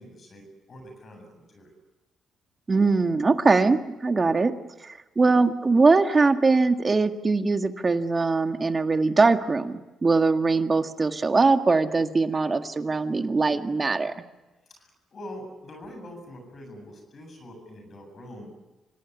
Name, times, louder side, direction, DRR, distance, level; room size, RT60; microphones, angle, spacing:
voice 1, 0.0-1.7 14.8-18.5, left 1 dB, 50° left, 4 dB, 8.0 m, -44 dB
voice 2, 2.7-4.5 4.8-14.2, right 3 dB, 35° right, 7 dB, 1.8 m, -22 dB
26.0 x 18.0 x 9.7 m, 1.1 s
supercardioid pair, 65°, 0 cm